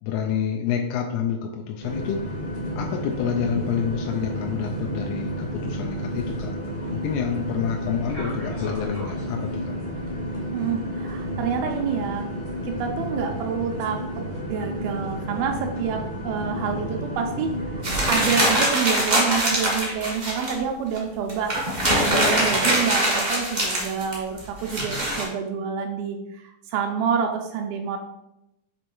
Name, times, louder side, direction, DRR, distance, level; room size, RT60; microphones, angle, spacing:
voice 1, 0.0-2.3 2.8-6.5 6.9-9.7, left 8 dB, 90° left, 1 dB, 2.5 m, -28 dB
sound 1, 1.8-18.3, equal, 45° left, 0.7 m, -31 dB
voice 2, 10.5-12.3 12.6-28.0, right 6 dB, 80° right, 3 dB, 2.2 m, -28 dB
sound 2, 17.8-20.5 21.0-21.1 21.3-25.2, right 1 dB, 35° right, 0.7 m, -23 dB
6.9 x 3.1 x 4.5 m, 0.90 s
omnidirectional pair, 4.4 m